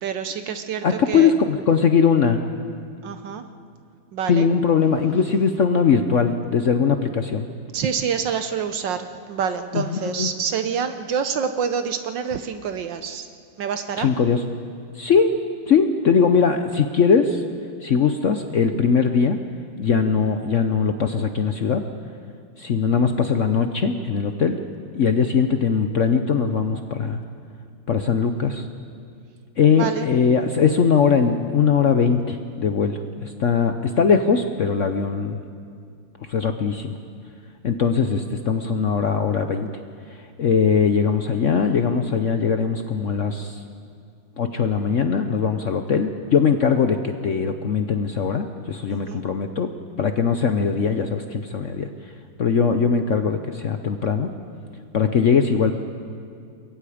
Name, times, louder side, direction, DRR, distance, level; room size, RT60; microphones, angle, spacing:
voice 1, 0.0-1.3 3.0-3.4 4.1-4.5 7.7-13.3 13.6-14.1 29.8-30.1 48.9-49.2, right 7 dB, 65° right, 9 dB, 1.4 m, -27 dB
voice 2, 0.8-2.4 4.3-7.5 9.7-10.3 14.0-14.4 14.9-15.3 15.7-17.4 17.8-19.4 19.8-21.8 22.6-24.6 24.9-27.2 27.9-28.7 29.6-35.4 36.3-36.9 37.6-39.7 40.4-43.6 44.4-51.9 52.4-54.3 54.9-55.7, left 6 dB, 75° left, 7 dB, 0.7 m, -20 dB
28.0 x 22.5 x 5.0 m, 2.3 s
omnidirectional pair, 2.4 m